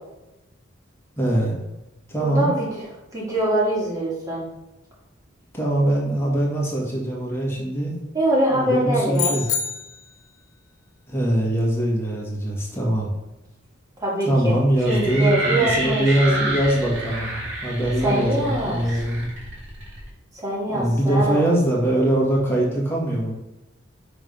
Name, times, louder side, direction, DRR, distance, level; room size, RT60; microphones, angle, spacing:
voice 1, 1.2-1.6 2.1-2.5 5.5-8.0 8.5-9.5 11.1-13.1 14.2-19.3 20.7-23.3, right 1 dB, 10° left, -4 dB, 1.7 m, -22 dB
voice 2, 2.2-2.8 3.1-4.5 8.1-9.3 14.0-14.6 14.9-16.5 18.0-18.8 20.3-21.6, right 1 dB, 20° right, -6 dB, 2.4 m, -23 dB
sound 1, 9.1-10.3, left 6 dB, 80° left, 0.8 m, -27 dB
sound 2, 14.8-20.1, right 1 dB, 65° right, 2.2 m, -29 dB
5.3 x 3.9 x 5.2 m, 0.95 s
head